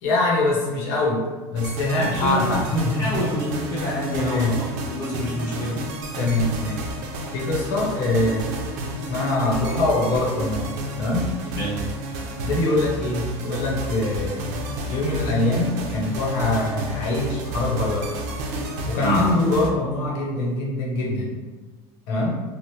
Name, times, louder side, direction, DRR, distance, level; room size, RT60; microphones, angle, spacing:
voice 1, 0.0-1.2 1.5-3.2 4.1-4.6 6.2-6.9 7.3-8.6 9.1-11.3 12.4-14.6 14.9-18.1 18.9-21.4 22.1-22.4, left 2 dB, 70° left, -3 dB, 1.0 m, -23 dB
sound 1, 1.6-19.7, right 1 dB, 90° right, 0.5 m, -31 dB
voice 2, 1.9-2.5 2.9-5.8 11.5-11.8 19.0-19.3, equal, 35° left, -9 dB, 0.8 m, -27 dB
3.0 x 2.0 x 3.1 m, 1.3 s
cardioid pair, 165°, 9 cm